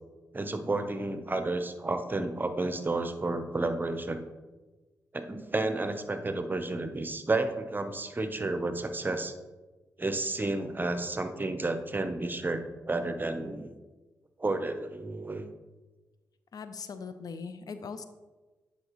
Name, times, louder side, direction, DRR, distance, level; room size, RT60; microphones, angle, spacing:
voice 1, 0.3-4.2 5.1-9.3 10.0-13.7 14.4-15.5, right 2 dB, 30° right, 8 dB, 0.8 m, -31 dB
voice 2, 16.5-18.0, left 5 dB, 65° left, 10 dB, 0.5 m, -40 dB
9.5 x 5.0 x 3.1 m, 1.2 s
supercardioid pair, 45°, 7 cm